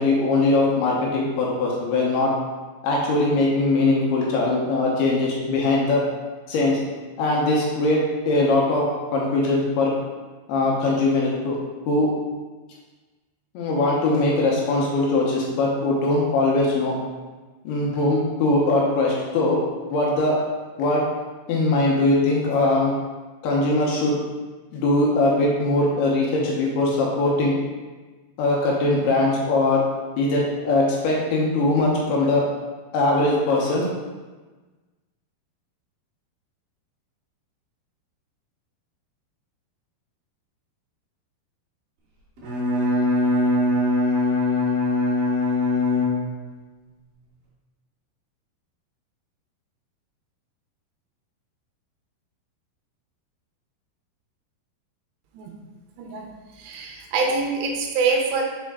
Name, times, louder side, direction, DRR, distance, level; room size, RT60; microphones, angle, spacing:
voice 1, 0.0-2.3 2.8-6.0 6.5-6.8 7.2-8.0 8.3-8.8 9.1-9.9 10.5-11.6 11.9-12.1 13.5-17.0 17.6-19.6 19.9-20.4 20.8-21.0 21.5-22.9 23.4-24.2 24.7-27.5 28.4-29.8 30.2-32.4 32.9-33.8, left 2 dB, 75° left, -3 dB, 2.7 m, -21 dB
Bowed string instrument, 42.4-46.6, left 2 dB, 60° right, 2.6 m, -22 dB
voice 2, 56.0-56.3 56.5-58.4, right 4 dB, 80° right, 1 dB, 2.7 m, -25 dB
6.4 x 4.4 x 3.5 m, 1.3 s
omnidirectional pair, 5.0 m